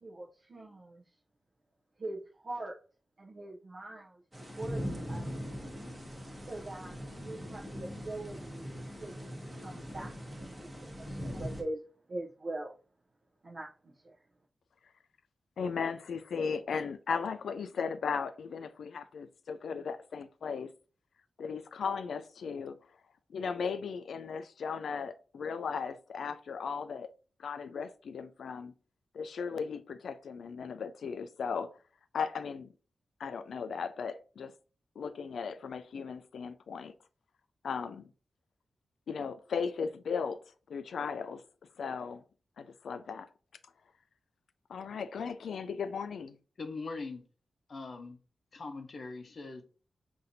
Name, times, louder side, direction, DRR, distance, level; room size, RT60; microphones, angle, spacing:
voice 1, 0.0-1.0 2.0-2.8 3.2-4.2 4.6-5.3 6.5-8.7 9.0-9.1 9.5-11.8 12.1-12.7 13.4-14.2, right 2 dB, 45° right, 0.5 m, -42 dB
sound 1, 4.3-11.6, equal, 10° right, 0.9 m, -41 dB
voice 2, 15.6-20.7 21.4-22.8 23.3-27.1 27.4-28.7 29.1-31.8 32.1-32.7 33.2-34.5 35.0-36.9 37.6-38.1 39.1-41.4 41.8-42.2 42.6-43.3 44.7-46.4, left 6 dB, 90° left, 0.3 m, -36 dB
voice 3, 46.6-47.2 47.7-48.2 48.5-49.6, left 3 dB, 55° left, 0.7 m, -41 dB
5.8 x 2.6 x 2.6 m
wide cardioid pair, 135°, 0 cm